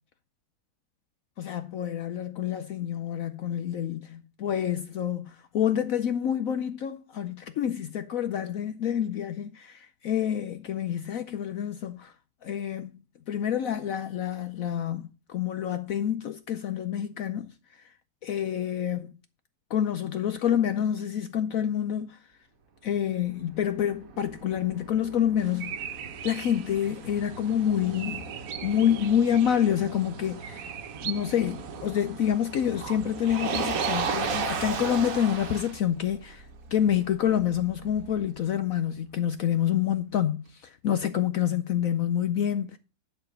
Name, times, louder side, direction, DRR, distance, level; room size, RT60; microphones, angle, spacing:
voice 1, 1.4-12.1 12.4-17.5 18.2-19.1 19.7-22.2 22.8-25.9 26.2-28.3 28.6-30.8 31.0-36.5 36.7-42.8, left 9 dB, 80° left, 0.7 m, -28 dB
Motor vehicle (road), 23.2-38.3, right 5 dB, 50° right, 1.3 m, -36 dB
sound 1, 25.4-34.1, right 10 dB, 80° right, 1.5 m, -42 dB
10.5 x 4.4 x 6.4 m
omnidirectional pair, 2.1 m